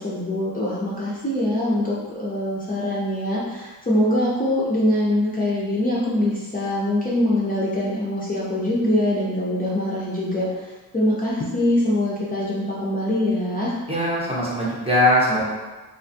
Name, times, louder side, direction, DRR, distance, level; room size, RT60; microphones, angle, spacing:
voice 1, 0.0-13.7, left 1 dB, 20° left, -8 dB, 0.5 m, -23 dB
voice 2, 13.9-15.4, left 1 dB, 15° right, -7 dB, 0.8 m, -20 dB
2.3 x 2.0 x 2.6 m, 1.2 s
supercardioid pair, 50°, 40 cm